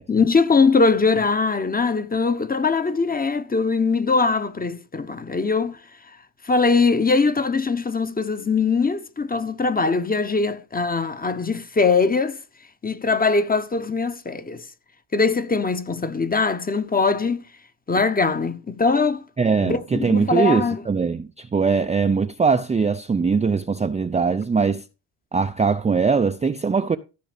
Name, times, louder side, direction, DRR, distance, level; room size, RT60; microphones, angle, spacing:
voice 1, 0.1-5.8 6.4-12.4 12.8-14.6 15.1-17.4 17.9-19.2 19.6-20.8, left 4 dB, 20° left, 1.0 m, -21 dB
voice 2, 19.4-24.8 25.3-27.0, right 5 dB, 15° right, 0.5 m, -21 dB
14.5 x 5.0 x 5.1 m
supercardioid pair, 85°, 49 cm